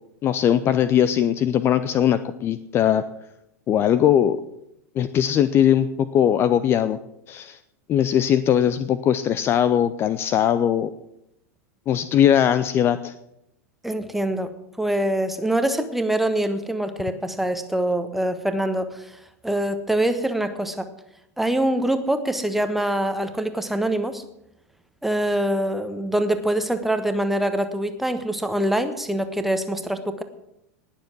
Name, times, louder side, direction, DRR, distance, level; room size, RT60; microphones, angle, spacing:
voice 1, 0.2-3.0 3.7-4.4 5.0-7.0 7.3-7.6 7.9-10.9 11.9-13.1, left 10 dB, 30° left, 14 dB, 0.6 m, -20 dB
voice 2, 13.8-19.1 19.4-20.9 21.4-24.2 25.0-30.2, right 1 dB, ahead, 9 dB, 1.2 m, -24 dB
19.5 x 7.3 x 6.1 m, 0.82 s
figure-of-eight pair, 90°, 8 cm